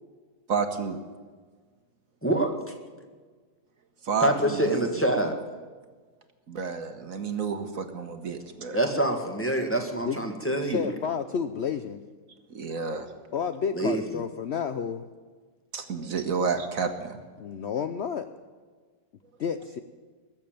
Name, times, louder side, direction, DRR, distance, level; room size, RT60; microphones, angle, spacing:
voice 1, 0.5-1.0 4.0-4.8 6.5-8.8 12.5-13.1 15.7-17.2, right 5 dB, 50° right, 7 dB, 1.4 m, -30 dB
voice 2, 4.2-5.4 8.7-10.9 13.7-14.0, right 1 dB, 5° left, 3 dB, 1.6 m, -26 dB
voice 3, 10.5-12.0 13.3-15.0 17.4-18.3 19.4-19.8, left 7 dB, 80° left, 9 dB, 0.5 m, -31 dB
21.0 x 7.5 x 9.0 m, 1.5 s
omnidirectional pair, 2.0 m